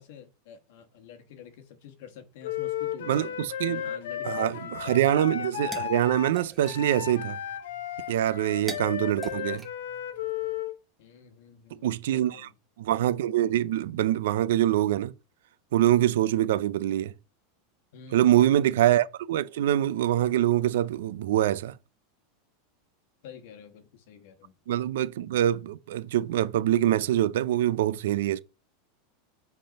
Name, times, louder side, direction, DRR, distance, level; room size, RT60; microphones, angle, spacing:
voice 1, 0.0-3.4 3.7-4.7 5.1-5.2 11.0-12.5 17.9-18.8 23.2-24.6, left 7 dB, 60° left, 1.3 m, -48 dB
Wind instrument woodwind instrument, 2.4-10.8, left 11 dB, 85° left, 0.9 m, -34 dB
voice 2, 3.1-3.8 4.2-7.4 8.1-9.6 11.8-12.5 12.8-15.1 15.7-17.1 18.1-21.7 24.7-28.4, right 12 dB, 75° right, 0.4 m, -24 dB
sound 1, 5.2-10.5, right 3 dB, 5° right, 1.0 m, -46 dB
7.8 x 3.5 x 5.1 m
supercardioid pair, 170°, 0 cm